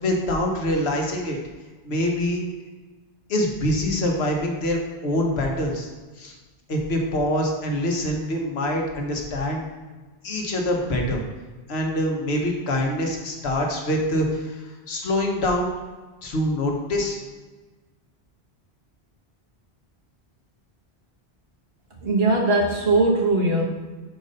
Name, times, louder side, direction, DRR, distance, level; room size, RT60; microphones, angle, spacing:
voice 1, 0.0-1.4 1.8-2.4 3.3-5.9 6.2-6.3 6.7-9.6 10.2-11.2 11.7-15.7 16.2-17.2, left 1 dB, 75° left, 1 dB, 1.3 m, -25 dB
voice 2, 22.0-23.6, right 2 dB, 70° right, -2 dB, 1.4 m, -20 dB
5.4 x 4.6 x 5.2 m, 1.3 s
omnidirectional pair, 1.1 m